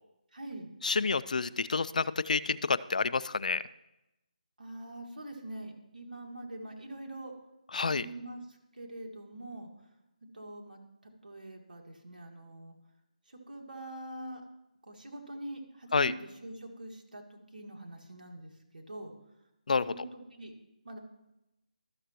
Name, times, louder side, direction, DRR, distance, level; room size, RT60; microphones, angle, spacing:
voice 1, 0.3-0.7 4.6-7.3 7.8-8.4 8.7-9.7 10.3-10.8 11.2-12.8 13.3-14.4 14.9-16.1 16.4-19.1 19.7-20.5 20.8-21.0, right 1 dB, 85° right, 2 dB, 1.8 m, -44 dB
voice 2, 0.8-3.6 7.7-8.1 15.9-16.1 19.7-20.0, left 4 dB, 65° left, 17 dB, 0.3 m, -29 dB
12.5 x 6.6 x 2.9 m, 0.91 s
figure-of-eight pair, 160°, 5 cm